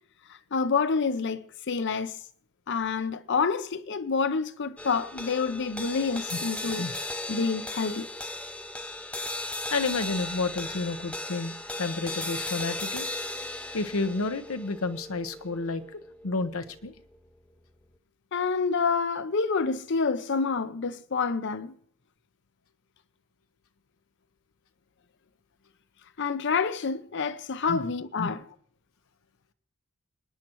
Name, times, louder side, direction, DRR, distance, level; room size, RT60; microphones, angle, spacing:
voice 1, 0.3-2.2 2.7-6.9 7.3-8.1 18.3-21.7 26.2-28.4, left 5 dB, 55° left, 0.6 m, -28 dB
sound 1, 4.8-17.3, left 2 dB, 5° left, 0.5 m, -37 dB
voice 2, 9.7-13.1 13.7-16.9 27.7-27.8 28.2-28.3, left 3 dB, 85° left, 1.0 m, -31 dB
29.5 x 10.0 x 3.0 m
head